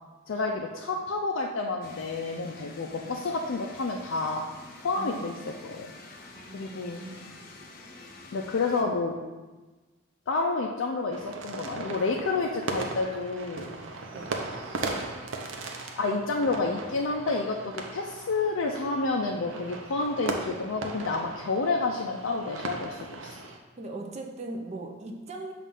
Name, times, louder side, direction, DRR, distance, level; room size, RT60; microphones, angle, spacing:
voice 1, 0.3-4.4 4.8-5.4 5.6-5.9 6.5-7.0 8.3-9.1 10.3-13.7 16.0-23.4, left 3 dB, 85° left, 0 dB, 0.4 m, -29 dB
sound 1, 1.8-8.8, left 2 dB, 50° left, 0.7 m, -48 dB
voice 2, 4.9-5.5 6.3-7.2 8.8-8.9 14.1-14.4 23.8-25.5, right 2 dB, 35° right, 1 dB, 0.5 m, -39 dB
sound 2, 11.1-23.6, right 3 dB, 80° right, 0.7 m, -38 dB
7.3 x 2.5 x 5.3 m, 1.2 s
head